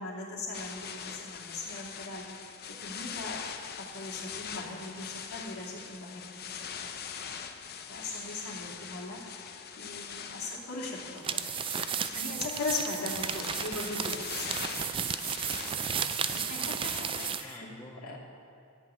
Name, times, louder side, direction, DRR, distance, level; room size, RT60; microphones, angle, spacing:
voice 1, 0.0-2.5 2.8-3.4 3.8-6.9 7.9-9.5 9.8-11.5 12.1-14.5 16.5-17.7 18.0-18.2, left 3 dB, 80° left, -5 dB, 2.8 m, -39 dB
sound 1, 0.5-17.4, left 7 dB, 45° left, 0.7 m, -42 dB
sound 2, 11.2-17.5, right 8 dB, 25° right, 0.3 m, -33 dB
voice 2, 12.1-12.5 15.5-18.2, equal, 20° left, 0 dB, 1.4 m, -53 dB
13.0 x 5.9 x 8.6 m, 2.3 s
head